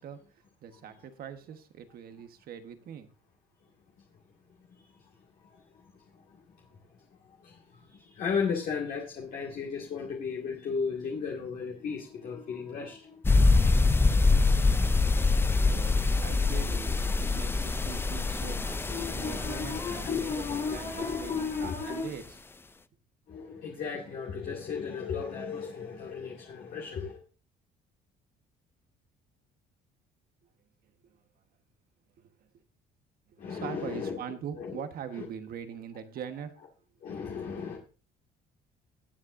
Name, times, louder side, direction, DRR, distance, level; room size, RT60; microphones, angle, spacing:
voice 1, 0.0-3.1 15.6-22.2 30.8-31.2 32.2-32.5 33.3-36.5, right 8 dB, 60° right, 1.3 m, -42 dB
voice 2, 7.4-13.2 18.8-22.1 23.3-27.2 33.4-34.2 34.6-34.8 35.2-35.3 37.0-37.8, left 5 dB, 55° left, 2.1 m, -35 dB
sound 1, 13.2-21.7, left 3 dB, 15° left, 0.4 m, -25 dB
18.5 x 7.5 x 2.6 m
cardioid pair, 110°, 17 cm